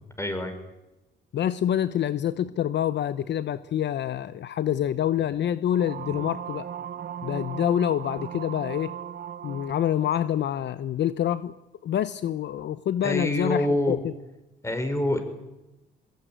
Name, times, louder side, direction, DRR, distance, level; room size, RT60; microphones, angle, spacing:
voice 1, 0.2-0.5 13.0-14.0 14.6-15.2, left 1 dB, 15° left, 7 dB, 5.8 m, -26 dB
voice 2, 1.3-6.7 7.2-8.9 9.4-11.5 11.8-14.1, left 10 dB, 65° left, 14 dB, 0.8 m, -26 dB
sound 1, 5.7-10.2, right 9 dB, 55° right, 1.4 m, -37 dB
22.0 x 21.5 x 9.2 m, 0.98 s
cardioid pair, 90°, 20 cm